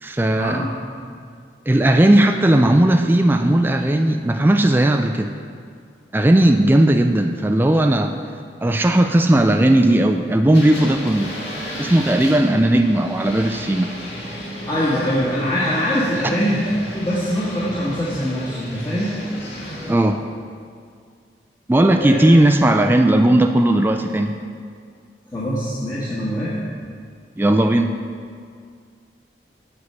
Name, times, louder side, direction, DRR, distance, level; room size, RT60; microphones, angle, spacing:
voice 1, 0.0-0.7 1.7-5.3 6.1-8.1 8.6-11.3 11.8-13.9 19.9-20.2 21.7-24.3 27.4-27.9, right 1 dB, 10° right, 5 dB, 0.3 m, -16 dB
sound 1, 10.5-19.9, equal, 75° left, 2.0 m, -34 dB
voice 2, 14.7-19.1 22.0-22.3 25.3-26.5, equal, 25° left, -9 dB, 1.4 m, -23 dB
7.8 x 7.1 x 5.5 m, 2.2 s
head